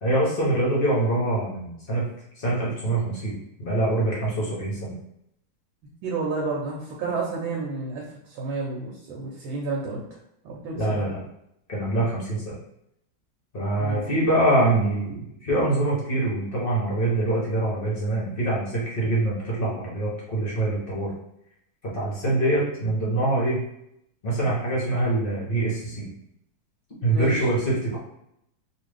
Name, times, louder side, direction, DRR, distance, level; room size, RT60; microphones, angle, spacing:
voice 1, 0.0-2.1 2.4-4.9 10.7-11.2 11.7-12.5 13.5-21.1 21.9-23.6 24.2-26.1 27.0-28.0, right 2 dB, 45° left, -6 dB, 0.7 m, -24 dB
voice 2, 6.0-10.0 10.4-11.0 13.8-14.0 27.1-27.3, right 3 dB, 80° right, -3 dB, 1.5 m, -30 dB
3.3 x 2.5 x 3.3 m, 0.78 s
omnidirectional pair, 2.2 m